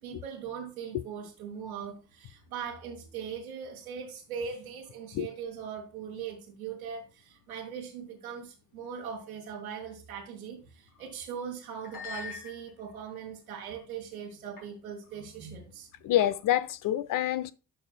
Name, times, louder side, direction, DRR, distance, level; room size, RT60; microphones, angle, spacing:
voice 1, 0.0-15.9, right 7 dB, 85° right, 1.6 m, -40 dB
sound 1, 10.9-11.1 11.8-13.0 13.6-13.9 14.6-14.7 15.0-15.2 16.2-16.6, left 5 dB, 65° left, 3.5 m, -44 dB
voice 2, 16.0-17.5, left 13 dB, 50° left, 0.6 m, -27 dB
12.0 x 5.5 x 2.3 m
figure-of-eight pair, 45°, 41 cm